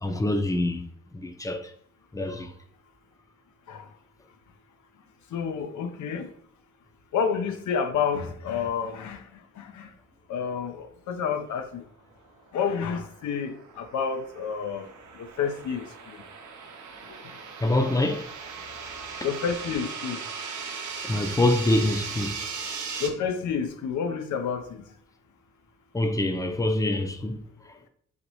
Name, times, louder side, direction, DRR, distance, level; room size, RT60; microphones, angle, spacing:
voice 1, 0.0-0.8 1.1-1.7 2.1-2.5 17.6-18.3 21.0-22.4 25.9-27.7, left 1 dB, 10° left, 0.5 m, -25 dB
voice 2, 5.3-6.3 7.1-9.2 9.6-9.9 10.3-11.8 12.5-14.9 15.2-15.8 19.2-20.2 23.0-24.8, left 6 dB, 85° left, 0.5 m, -29 dB
sound 1, 12.6-23.1, right 5 dB, 80° right, 0.7 m, -38 dB
4.0 x 3.0 x 3.0 m
cardioid pair, 80°, 29 cm